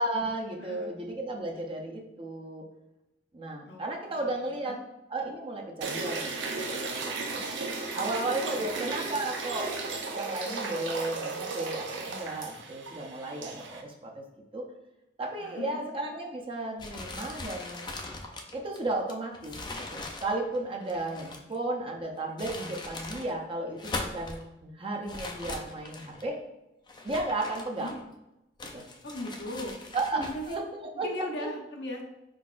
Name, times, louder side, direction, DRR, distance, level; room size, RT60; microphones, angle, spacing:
voice 1, 0.0-2.6 3.3-4.8 5.1-6.3 6.7-7.5 7.9-14.2 14.5-14.7 15.2-17.9 18.5-26.4 27.0-27.9 28.7-28.8 29.9-31.1 31.4-31.5, right 2 dB, 30° right, 1 dB, 0.5 m, -34 dB
voice 2, 0.6-0.9 3.7-4.8 8.4-8.7 15.4-15.8 21.3-21.5 27.8-28.0 29.0-29.8 30.1-30.6 31.0-32.0, left 1 dB, 65° left, 1 dB, 0.7 m, -39 dB
sound 1, 5.8-13.8, right 3 dB, 80° right, 0.6 m, -35 dB
sound 2, 16.8-21.6 22.2-23.3 23.7-24.4 25.1-26.3 26.9-28.2 28.6-30.6, left 2 dB, 25° left, 0.4 m, -40 dB
4.6 x 3.8 x 2.5 m, 0.91 s
head